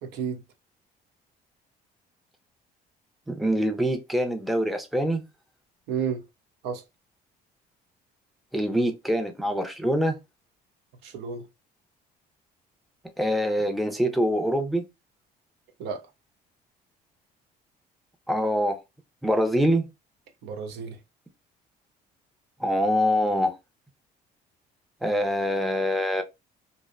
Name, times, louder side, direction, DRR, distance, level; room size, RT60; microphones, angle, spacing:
voice 1, 0.0-0.4 5.9-6.2 6.6-6.8 11.0-11.4 15.8-16.0 20.4-21.0, right 6 dB, 85° right, 0.6 m, -31 dB
voice 2, 3.3-5.2 8.5-10.2 13.2-14.8 18.3-18.8 19.2-19.9 22.6-23.5 25.0-26.2, equal, ahead, 0.5 m, -24 dB
2.6 x 2.0 x 2.4 m
cardioid pair, 110°, 17 cm